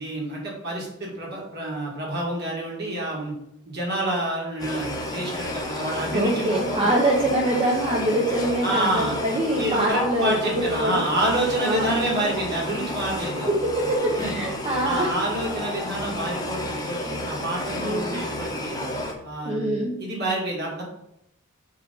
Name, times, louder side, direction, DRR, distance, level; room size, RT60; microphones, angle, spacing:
voice 1, 0.0-3.3 3.7-6.5 6.8-6.9 8.6-9.2 9.6-13.5 14.2-14.4 14.8-18.9 19.2-20.8, right 1 dB, 50° right, -3 dB, 2.1 m, -28 dB
sound 1, 4.6-19.1, left 1 dB, 20° left, 0.9 m, -31 dB
voice 2, 6.1-11.1 11.6-11.9 13.5-15.1 17.7-18.2 19.4-20.0, right 1 dB, 25° right, -3 dB, 0.9 m, -24 dB
4.9 x 4.1 x 5.4 m, 0.82 s
head